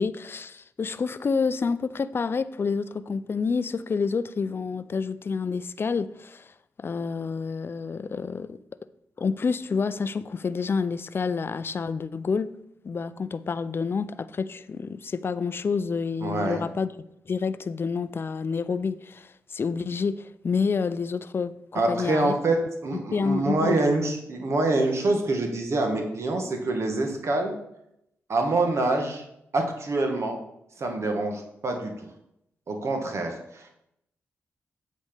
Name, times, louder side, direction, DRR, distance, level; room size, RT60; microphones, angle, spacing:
voice 1, 0.0-6.5 6.8-8.6 9.2-12.5 12.8-16.9 17.3-22.3 22.9-23.8, left 5 dB, 45° left, 0.4 m, -28 dB
voice 2, 16.2-16.6 21.7-27.6 28.3-29.2 29.5-30.4 30.8-32.1 32.7-33.7, right 2 dB, 60° right, 1.4 m, -26 dB
8.1 x 4.2 x 5.1 m
cardioid pair, 55°, 5 cm